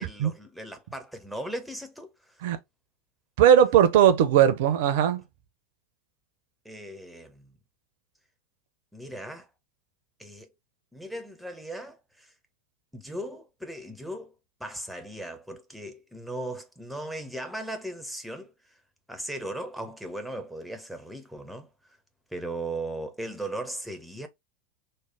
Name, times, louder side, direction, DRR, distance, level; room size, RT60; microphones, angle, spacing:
voice 1, 0.0-2.5 6.6-7.5 8.9-9.5 10.2-10.5 10.9-12.3 12.9-14.3 14.6-18.5 19.1-22.0 22.3-24.3, right 1 dB, ahead, 0.7 m, -37 dB
voice 2, 3.4-5.2, right 9 dB, 55° right, 0.5 m, -19 dB
3.1 x 2.1 x 3.6 m
figure-of-eight pair, 85°, 0 cm